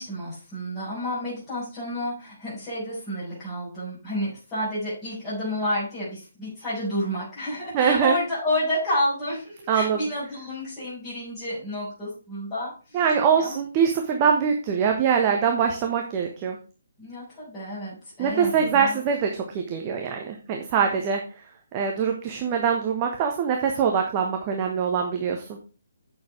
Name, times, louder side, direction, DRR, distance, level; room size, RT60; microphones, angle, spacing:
voice 1, 0.0-13.0 13.4-13.6 17.0-19.0, left 1 dB, 15° left, -13 dB, 6.5 m, -30 dB
voice 2, 7.7-8.2 9.7-10.0 12.9-16.6 18.2-21.2 21.7-25.6, right 7 dB, 25° right, 2 dB, 1.3 m, -23 dB
8.8 x 7.0 x 4.9 m, 0.35 s
figure-of-eight pair, 140°, 0 cm